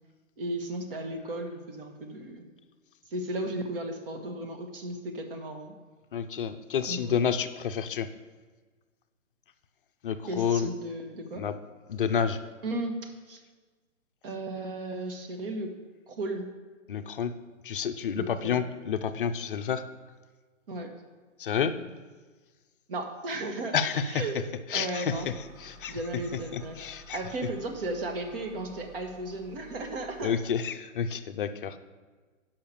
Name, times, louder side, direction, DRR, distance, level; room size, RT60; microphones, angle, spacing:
voice 1, 0.4-2.5 3.1-5.7 6.9-7.2 10.3-11.4 12.6-12.9 13.3-13.4 14.2-15.7 16.1-16.4 18.1-18.6 20.7-20.9 22.9-23.8 24.1-24.4 24.7-25.3 25.9-26.8 27.1-30.4, right 2 dB, 45° right, 4 dB, 1.3 m, -35 dB
voice 2, 6.1-8.1 10.0-10.7 11.4-11.6 11.9-12.4 16.9-17.3 17.6-19.8 21.4-21.8 23.7-24.3 24.7-26.0 26.3-27.2 30.2-31.8, left 7 dB, 45° left, 9 dB, 0.5 m, -29 dB
sound 1, 25.1-30.4, equal, 10° right, 0.9 m, -52 dB
7.0 x 5.7 x 6.8 m, 1.4 s
hypercardioid pair, 150°, 39 cm